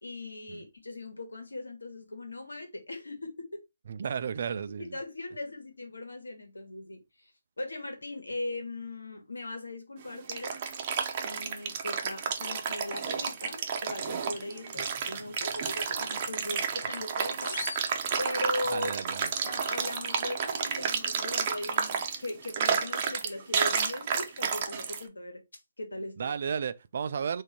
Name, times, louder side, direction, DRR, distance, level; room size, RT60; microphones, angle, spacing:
voice 1, 0.0-3.6 4.8-7.3 7.6-10.6 11.2-17.6 18.2-18.9 19.2-25.4 25.8-26.3, left 2 dB, 85° left, 1.3 m, -39 dB
voice 2, 3.9-5.0 18.7-19.3 26.2-27.4, right 7 dB, 50° right, 0.4 m, -33 dB
sound 1, 10.0-25.0, right 6 dB, 35° right, 0.7 m, -31 dB
sound 2, 17.4-18.9, left 4 dB, 60° left, 0.5 m, -43 dB
3.6 x 2.6 x 4.3 m
figure-of-eight pair, 145°, 0 cm